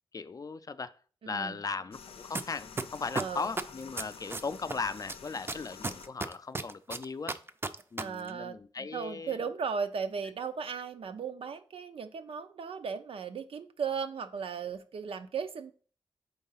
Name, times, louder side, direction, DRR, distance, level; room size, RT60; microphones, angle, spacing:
voice 1, 0.1-1.0 1.3-7.4 7.9-9.4, left 4 dB, 40° left, 0.4 m, -38 dB
voice 2, 1.3-1.6 3.2-3.5 8.0-15.7, right 6 dB, 75° right, 0.6 m, -36 dB
casette being loaded and rewound, 1.9-6.1, left 6 dB, 85° left, 0.6 m, -49 dB
sound 1, 2.3-2.4 2.8-4.7 5.1-8.0 8.3-8.4, right 3 dB, 25° right, 0.5 m, -33 dB
4.6 x 3.8 x 5.6 m
cardioid pair, 75°, 9 cm